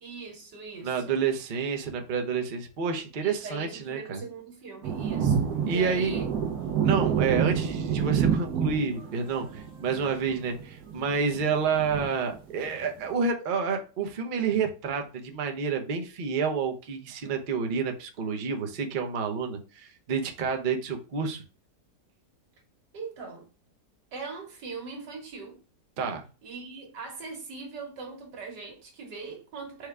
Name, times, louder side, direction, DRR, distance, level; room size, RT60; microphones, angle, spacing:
voice 1, 0.0-1.2 3.2-6.2 22.9-23.5 24.1-25.6 26.4-29.9, right 4 dB, 85° right, 1.9 m, -40 dB
voice 2, 0.8-4.2 5.7-6.1 6.8-21.4 26.0-26.2, right 5 dB, 50° right, 0.6 m, -29 dB
sound 1, 4.8-13.0, right 7 dB, 65° right, 1.3 m, -28 dB
4.7 x 2.3 x 4.7 m
omnidirectional pair, 1.8 m